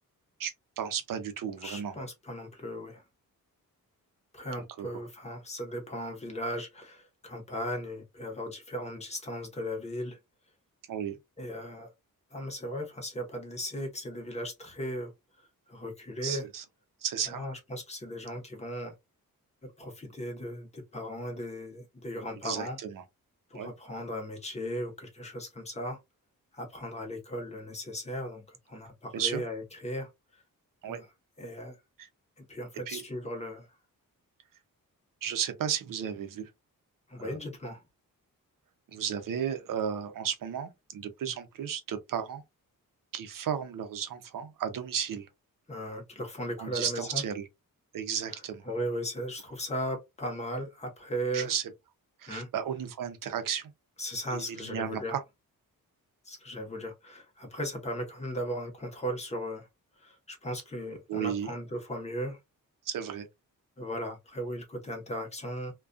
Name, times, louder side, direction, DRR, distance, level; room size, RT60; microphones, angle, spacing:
voice 1, 0.4-1.9 4.8-4.9 10.9-11.2 16.2-16.6 17.0-17.4 22.4-23.0 23.5-23.7 29.1-29.4 30.8-31.0 32.0-32.1 32.9-33.0 35.2-36.5 37.2-37.4 38.9-42.4 43.1-45.3 46.6-47.4 47.9-48.6 51.3-51.6 52.2-53.7 54.3-55.2 61.1-61.5 62.9-63.3, right 8 dB, 65° right, 0.6 m, -34 dB
voice 2, 1.6-3.0 4.3-10.2 11.4-11.9 12.3-15.1 15.4-16.5 17.3-18.9 19.6-22.8 23.5-26.0 26.5-30.4 30.8-31.1 31.4-31.8 32.5-33.7 37.1-37.8 45.7-47.2 48.6-51.5 52.3-52.5 54.0-55.2 56.2-59.7 60.0-62.4 63.8-65.7, equal, 20° left, 0.8 m, -37 dB
2.3 x 2.3 x 2.5 m
wide cardioid pair, 155°, 35 cm